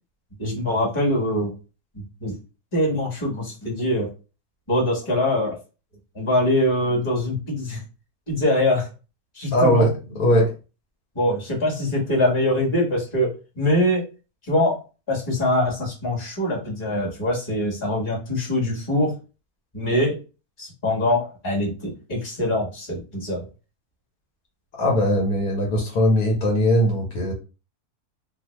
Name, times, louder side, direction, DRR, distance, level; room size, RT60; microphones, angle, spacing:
voice 1, 0.4-1.5 2.2-2.4 2.7-4.1 4.7-5.6 6.1-7.8 8.3-8.9 9.3-9.9 10.3-10.4 11.1-14.0 14.5-14.8 15.1-19.1 19.7-20.2 20.6-23.4, left 1 dB, 20° left, -2 dB, 1.2 m, -23 dB
voice 2, 9.5-10.5 24.8-27.3, equal, 80° left, 0 dB, 1.6 m, -20 dB
2.7 x 2.7 x 3.1 m, 0.32 s
omnidirectional pair, 1.6 m